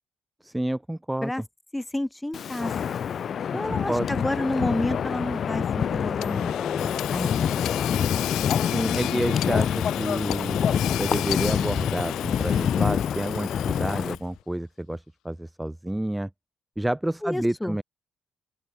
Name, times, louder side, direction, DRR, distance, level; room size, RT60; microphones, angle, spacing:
voice 1, 0.4-1.3 3.7-4.1 8.7-10.6 11.0-16.3 16.8-17.8, right 1 dB, 5° right, 2.0 m, -29 dB
voice 2, 1.7-3.0 3.5-7.6 17.2-17.8, left 1 dB, 10° left, 5.4 m, -30 dB
Wind, 2.3-14.2, left 8 dB, 55° left, 0.9 m, -26 dB
Hammer / Sawing, 6.2-14.4, left 15 dB, 90° left, 1.5 m, -35 dB
open air
cardioid pair, 90°, 0 cm